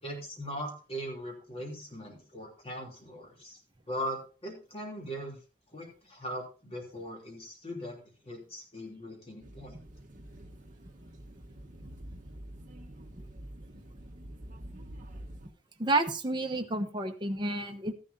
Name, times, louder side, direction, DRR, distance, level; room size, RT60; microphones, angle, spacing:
voice 1, 0.0-3.6 3.9-5.4 5.7-9.8, equal, 30° left, 0 dB, 3.2 m, -40 dB
sound 1, 9.4-15.5, right 1 dB, 45° right, 1.2 m, -47 dB
voice 2, 15.8-17.9, right 2 dB, 25° right, 4 dB, 1.0 m, -30 dB
14.0 x 11.0 x 2.7 m, 0.36 s
head